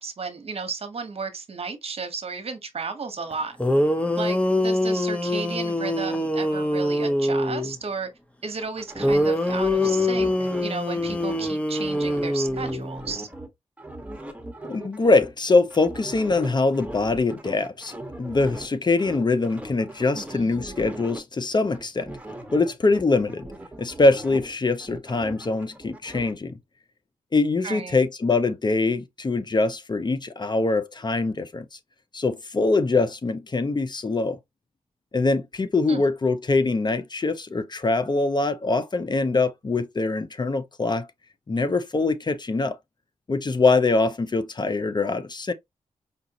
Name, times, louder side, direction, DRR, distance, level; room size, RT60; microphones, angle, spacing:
voice 1, 0.0-3.6 4.2-8.1 8.4-13.3 20.1-20.7 27.6-28.0 35.9-36.0, right 4 dB, 55° right, 1.2 m, -34 dB
sound 1, 3.3-3.4 3.6-7.8 9.0-13.0, left 1 dB, 10° left, 1.1 m, -24 dB
sound 2, 8.6-13.5 13.8-18.7 19.0-21.2 21.5-24.6 24.8-26.3, right 1 dB, 10° right, 1.4 m, -40 dB
voice 2, 14.6-22.1 22.5-23.5 23.8-26.6 27.3-31.7 32.1-34.4 35.1-41.1 41.5-42.8 43.3-45.5, left 3 dB, 35° left, 0.7 m, -23 dB
5.2 x 2.5 x 2.9 m
cardioid pair, 55°, 12 cm